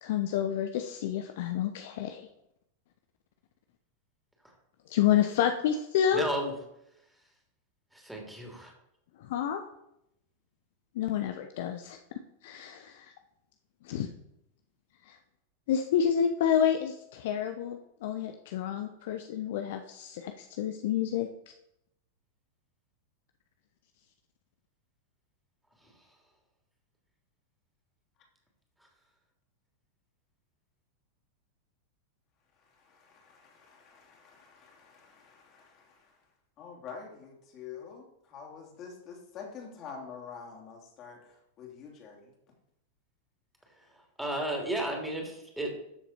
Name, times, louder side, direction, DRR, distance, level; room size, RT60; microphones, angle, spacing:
voice 1, 0.0-2.3 4.9-6.2 9.2-9.6 10.9-12.0 12.4-13.1 13.8-14.1 15.1-15.2 15.7-21.3, left 9 dB, 55° left, 6 dB, 0.8 m, -29 dB
voice 2, 6.1-6.5 7.9-8.7 44.2-45.8, right 1 dB, 5° right, 0 dB, 3.0 m, -33 dB
voice 3, 32.7-36.2 36.6-42.3, left 6 dB, 35° left, 0 dB, 3.0 m, -47 dB
13.5 x 7.0 x 4.3 m, 0.81 s
figure-of-eight pair, 90°, 0 cm